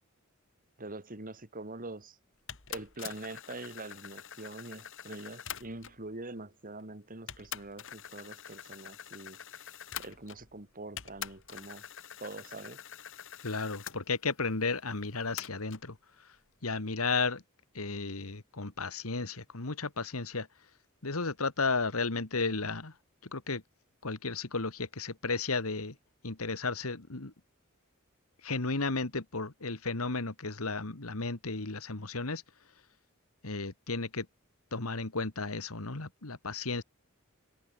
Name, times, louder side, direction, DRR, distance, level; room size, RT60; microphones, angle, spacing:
voice 1, 0.8-2.2 2.7-9.6 10.0-11.8 12.2-12.8, right 2 dB, 40° right, 2.7 m, -44 dB
sound 1, 2.5-6.1 6.8-6.9 7.3-10.6 11.0-14.0 15.4-15.9, left 9 dB, 65° left, 2.4 m, -45 dB
voice 2, 13.4-16.0 16.6-17.4 17.7-20.5 21.0-22.9 23.3-23.6 24.0-26.0 26.2-27.3 28.4-32.4 33.4-34.3 34.7-36.8, left 3 dB, 80° left, 2.0 m, -33 dB
head